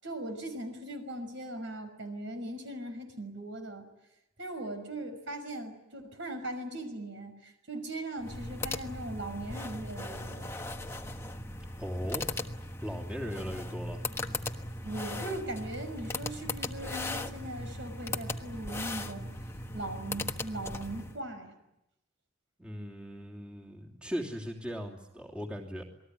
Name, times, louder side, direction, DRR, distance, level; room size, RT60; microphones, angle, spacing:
voice 1, 0.0-3.9 4.4-10.6 14.8-19.3 19.7-21.5, right 1 dB, 65° right, 7 dB, 6.0 m, -39 dB
sound 1, 8.2-21.2, left 2 dB, 15° left, 1.3 m, -38 dB
voice 2, 11.8-12.3 12.8-14.0 22.6-25.8, equal, 5° right, -2 dB, 2.9 m, -38 dB
28.0 x 20.5 x 9.4 m, 0.88 s
head